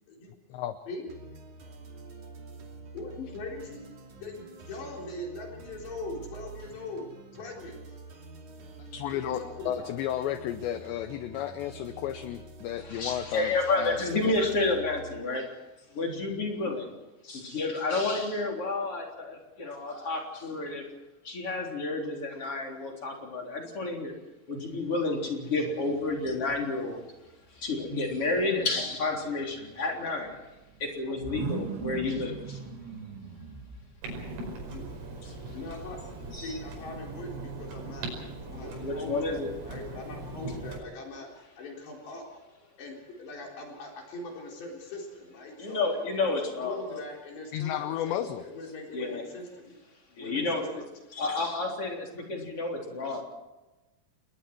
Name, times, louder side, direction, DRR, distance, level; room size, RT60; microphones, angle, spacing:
voice 1, 0.1-1.1 2.9-3.9 4.2-7.8 9.1-10.0 34.7-34.8 35.5-38.1 38.4-41.3 41.6-42.3 42.8-45.8 46.2-46.3 46.6-49.8 50.2-50.7, left 2 dB, 60° left, -1 dB, 6.0 m, -41 dB
sound 1, 1.1-15.2, right 3 dB, 45° right, 3.4 m, -47 dB
voice 2, 8.9-14.0 47.5-48.4, left 11 dB, 80° left, 10 dB, 2.6 m, -33 dB
voice 3, 12.8-15.5 15.9-17.0 17.2-20.8 21.2-24.1 24.5-27.1 27.5-30.4 30.8-32.6 35.5-35.6 36.3-36.6 38.5-39.5 45.6-47.0 48.9-49.2 50.2-50.8 51.1-53.2, left 3 dB, 30° left, 1 dB, 3.8 m, -30 dB
sound 2, 25.4-26.9 27.2-34.2, right 5 dB, 65° right, 4.4 m, -42 dB
Clock, 34.0-40.8, right 2 dB, 80° right, 7.7 m, -40 dB
29.5 x 21.5 x 4.6 m, 1.1 s
omnidirectional pair, 6.0 m